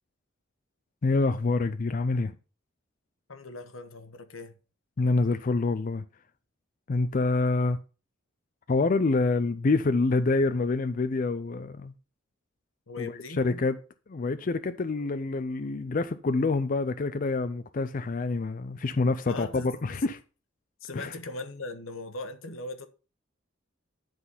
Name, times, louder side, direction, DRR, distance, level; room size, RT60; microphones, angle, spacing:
voice 1, 1.0-2.3 5.0-6.0 6.9-7.8 8.7-11.9 13.0-13.8 14.1-20.2 20.9-21.1, left 3 dB, 40° left, 0.4 m, -26 dB
voice 2, 3.3-4.6 12.9-13.5 19.3-20.0 20.8-22.9, left 3 dB, 90° left, 1.1 m, -40 dB
10.5 x 4.1 x 5.5 m
head